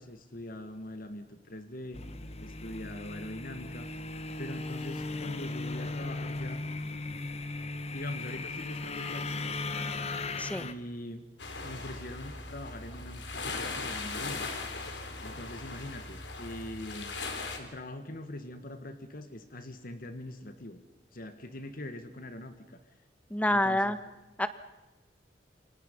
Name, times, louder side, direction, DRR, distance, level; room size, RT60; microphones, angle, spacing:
voice 1, 0.0-2.0 2.4-3.9 4.4-6.6 7.9-9.6 10.6-11.2 11.6-14.5 15.2-17.1 17.6-20.8 21.1-22.8 23.5-23.9, left 1 dB, 55° left, 8 dB, 1.9 m, -42 dB
sound 1, 1.9-10.7, left 3 dB, 35° left, 1.4 m, -37 dB
sound 2, 11.4-17.6, left 3 dB, 80° left, 3.9 m, -39 dB
voice 2, 23.3-24.0 24.4-24.5, left 1 dB, 10° left, 11 dB, 1.4 m, -27 dB
29.0 x 25.0 x 5.5 m, 1.0 s
head